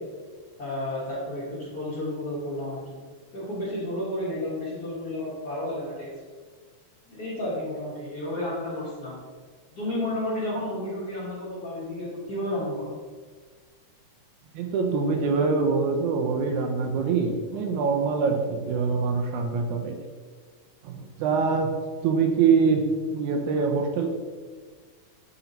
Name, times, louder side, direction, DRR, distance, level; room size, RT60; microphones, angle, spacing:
voice 1, 0.6-3.0 3.3-6.1 7.1-9.2 9.7-13.0, left 1 dB, 50° left, -8 dB, 1.3 m, -32 dB
voice 2, 14.5-20.0 20.8-21.7 22.0-22.8 23.1-24.1, right 5 dB, 80° right, 3 dB, 1.9 m, -24 dB
8.4 x 2.9 x 3.9 m, 1.5 s
omnidirectional pair, 3.5 m